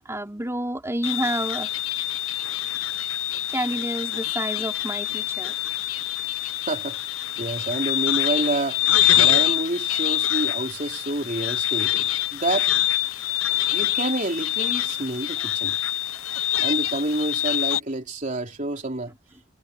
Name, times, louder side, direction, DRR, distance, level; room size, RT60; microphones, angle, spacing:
voice 1, 0.0-1.7 3.5-5.5 11.9-12.1, right 1 dB, 15° right, 4.5 m, -29 dB
sound 1, 1.0-17.8, left 14 dB, 80° left, 0.9 m, -25 dB
voice 2, 6.3-7.0 7.4-8.8 9.2-11.9 12.3-12.7 13.7-15.7 16.6-19.1, right 2 dB, 40° right, 3.6 m, -28 dB
head